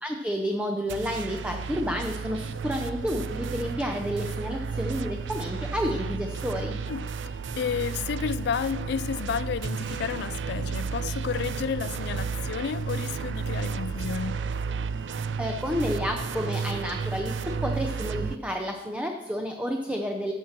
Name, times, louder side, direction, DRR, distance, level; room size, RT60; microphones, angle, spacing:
voice 1, 0.0-6.8 15.4-20.3, equal, 10° right, 0.6 m, -30 dB
sound 1, 0.9-18.4, right 5 dB, 75° right, 0.4 m, -32 dB
voice 2, 6.9-14.4, left 7 dB, 65° left, 0.3 m, -31 dB
13.5 x 7.3 x 4.4 m
head